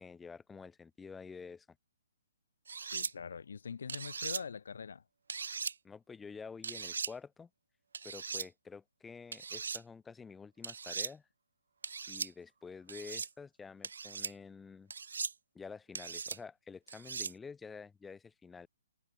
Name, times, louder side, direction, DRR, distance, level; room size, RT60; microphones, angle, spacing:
voice 1, 0.0-1.7 5.8-7.5 8.0-11.2 12.1-14.9 15.5-18.7, left 5 dB, 10° left, 4.9 m, -49 dB
sound 1, 2.7-3.1 3.9-4.4 5.3-5.7 6.6-7.1 7.9-8.5 9.3-9.8 10.6-11.1 11.8-12.3 12.9-13.3 13.8-14.3 14.9-15.3 15.9-16.4 16.9-17.3, right 5 dB, 80° right, 1.0 m, -39 dB
voice 2, 2.9-5.0, left 6 dB, 75° left, 1.0 m, -43 dB
hypercardioid pair, 145°, 0 cm